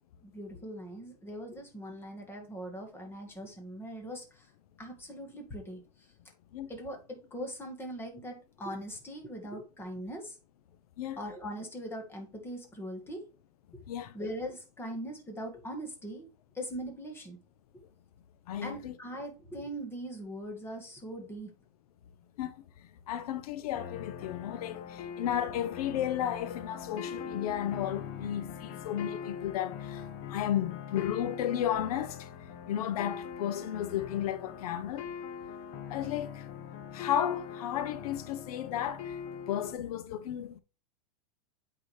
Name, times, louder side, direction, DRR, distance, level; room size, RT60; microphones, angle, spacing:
voice 1, 0.2-4.5 4.8-5.8 6.7-10.3 11.2-13.3 14.1-16.3 16.6-17.4 18.6-21.5, equal, 10° left, 1.8 m, -41 dB
voice 2, 18.5-18.9 22.4-22.5 23.1-30.0 30.3-32.3 32.7-35.1 35.9-36.5 36.9-39.2 39.5-40.6, left 10 dB, 70° left, 0.7 m, -33 dB
sound 1, 23.7-39.7, left 7 dB, 40° left, 1.1 m, -42 dB
8.5 x 4.9 x 3.3 m
supercardioid pair, 150°, 20 cm